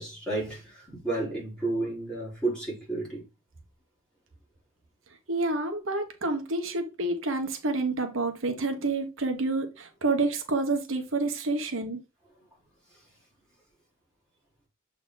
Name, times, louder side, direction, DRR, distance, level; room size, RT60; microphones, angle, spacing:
voice 1, 0.0-3.2, right 2 dB, 5° left, 4.2 m, -32 dB
voice 2, 5.3-12.0, right 2 dB, 70° right, 1.2 m, -28 dB
7.5 x 4.1 x 3.8 m
head